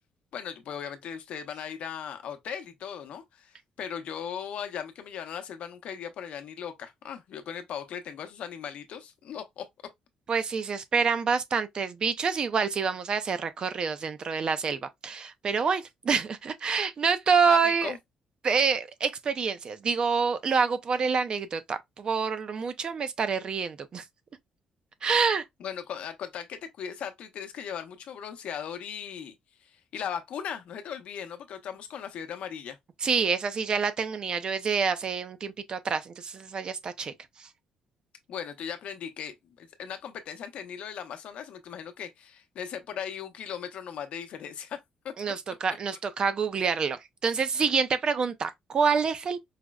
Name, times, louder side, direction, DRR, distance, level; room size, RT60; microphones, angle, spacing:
voice 1, 0.3-9.7 17.5-18.0 25.6-29.3 29.6-32.8 38.3-45.1, left 8 dB, 65° left, 0.7 m, -38 dB
voice 2, 10.3-17.9 18.4-24.0 25.0-25.4 33.0-37.1 37.4-37.5 45.2-49.4, right 5 dB, 40° right, 0.4 m, -27 dB
4.8 x 2.0 x 2.2 m
cardioid pair, 130°, 2 cm